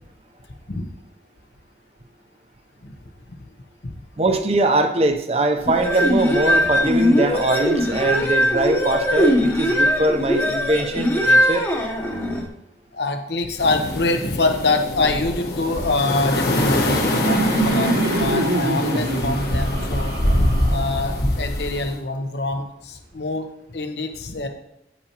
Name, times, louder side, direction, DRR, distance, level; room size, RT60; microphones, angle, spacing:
voice 1, 4.2-11.7, right 2 dB, 35° right, 6 dB, 0.7 m, -22 dB
sound 1, 5.7-12.5, equal, 15° left, 0.9 m, -20 dB
voice 2, 12.9-16.9 17.1-20.1 20.7-24.5, left 3 dB, 75° left, 5 dB, 1.0 m, -25 dB
sound 2, 13.6-21.9, left 1 dB, 60° left, 1.3 m, -24 dB
Laughter, 16.3-21.4, right 2 dB, 55° right, 1.2 m, -25 dB
8.7 x 8.5 x 2.9 m, 0.81 s
head